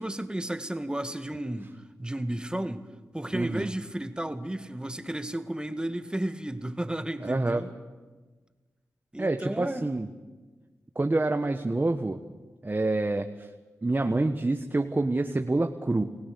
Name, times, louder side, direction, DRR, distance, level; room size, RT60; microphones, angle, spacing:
voice 1, 0.0-2.9 3.1-7.7 9.1-9.9, right 1 dB, 15° right, 8 dB, 1.9 m, -33 dB
voice 2, 3.3-3.7 7.2-7.6 9.2-10.1 10.9-12.2 12.6-13.5 13.8-16.0, right 2 dB, 30° right, 6 dB, 1.3 m, -27 dB
29.0 x 16.5 x 6.8 m, 1.3 s
cardioid pair, 40°, 7 cm